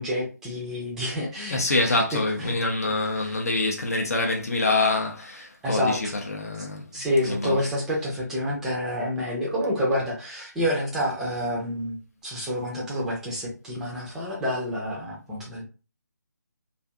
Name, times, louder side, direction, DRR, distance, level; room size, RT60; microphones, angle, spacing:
voice 1, 0.0-2.6 3.2-3.4 5.6-6.1 6.9-12.0 12.2-15.6, equal, 5° right, 0.4 m, -28 dB
voice 2, 1.5-7.6, left 2 dB, 55° left, 0.6 m, -26 dB
2.5 x 2.4 x 2.2 m
figure-of-eight pair, 150°, 10 cm